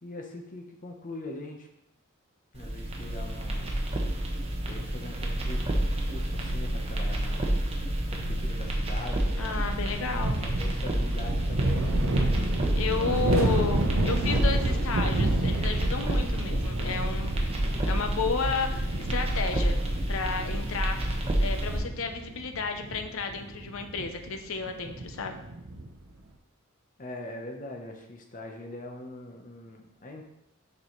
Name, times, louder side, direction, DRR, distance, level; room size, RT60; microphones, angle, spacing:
voice 1, 0.0-1.7 2.5-3.8 4.5-5.6 6.1-7.5 8.1-9.6 10.3-12.0 12.9-14.9 27.0-30.2, left 1 dB, 40° left, 2 dB, 0.9 m, -42 dB
sound 1, 2.5-21.8, right 1 dB, 30° right, 0.9 m, -29 dB
voice 2, 9.4-10.4 12.8-17.3 17.8-19.8 20.1-21.0 21.4-25.4, left 4 dB, 65° left, 6 dB, 0.7 m, -32 dB
sound 2, 10.2-26.0, right 1 dB, 65° right, 0.7 m, -31 dB
6.6 x 5.5 x 3.1 m, 0.82 s
head